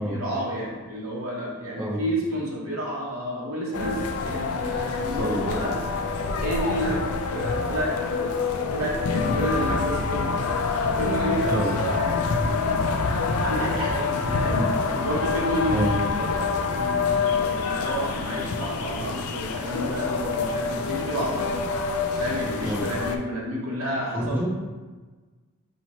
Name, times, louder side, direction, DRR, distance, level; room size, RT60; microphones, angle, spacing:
voice 1, 0.0-5.8 6.4-8.4 8.7-10.4 10.8-12.9 13.2-16.3 16.7-21.5 22.2-24.5, equal, 70° right, -3 dB, 1.0 m, -30 dB
sound 1, 3.7-23.2, left 4 dB, 80° left, 0.4 m, -26 dB
voice 2, 24.1-24.5, equal, 10° right, -5 dB, 0.6 m, -27 dB
5.6 x 2.9 x 3.0 m, 1.3 s
head